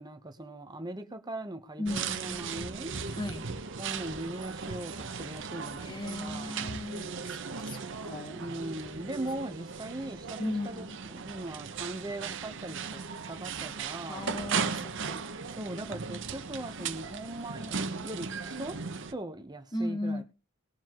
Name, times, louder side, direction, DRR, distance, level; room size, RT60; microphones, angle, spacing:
voice 1, 0.0-2.9 3.8-6.7 8.4-13.0 13.3-14.3 15.6-17.8 18.0-18.8 19.1-20.2, right 1 dB, 20° right, 0.9 m, -40 dB
voice 2, 1.8-2.7 3.1-3.5 5.8-8.5 10.4-10.9 14.1-15.3 19.7-20.2, left 1 dB, 20° left, 1.2 m, -37 dB
sound 1, 1.9-19.1, right 5 dB, 60° right, 0.9 m, -37 dB
20.0 x 7.1 x 3.0 m
head